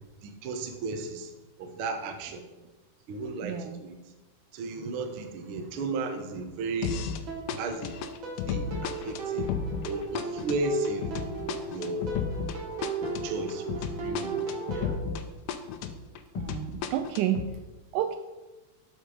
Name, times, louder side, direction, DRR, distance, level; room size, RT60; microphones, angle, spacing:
voice 1, 0.2-1.3 1.6-2.4 3.1-4.0 4.5-7.0 7.5-7.9 8.5-9.5 9.8-11.1 11.7-12.1 13.0-14.4 14.7-15.0, right 3 dB, 65° right, 5 dB, 1.3 m, -34 dB
voice 2, 3.4-3.8 16.4-17.5 17.9-18.2, right 10 dB, 80° right, 9 dB, 1.9 m, -30 dB
sound 1, 6.8-7.2 7.5-15.2 15.5-17.5, left 7 dB, 80° left, 2.3 m, -33 dB
sound 2, 7.3-14.9, right 4 dB, 45° right, 1.9 m, -36 dB
12.0 x 6.6 x 4.9 m, 1.1 s
omnidirectional pair, 4.0 m